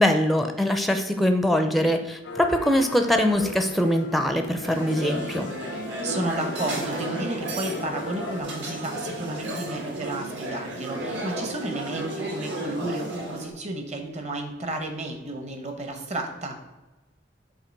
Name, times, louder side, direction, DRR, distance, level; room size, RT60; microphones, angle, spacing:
voice 1, 0.0-5.5, left 1 dB, ahead, 6 dB, 0.4 m, -22 dB
sound 1, 2.2-8.4, left 3 dB, 90° left, 0.7 m, -39 dB
sound 2, 4.6-13.5, right 1 dB, 70° right, 1.5 m, -33 dB
voice 2, 6.0-16.6, right 1 dB, 40° right, 4 dB, 1.0 m, -32 dB
7.4 x 2.9 x 5.2 m, 1.1 s
head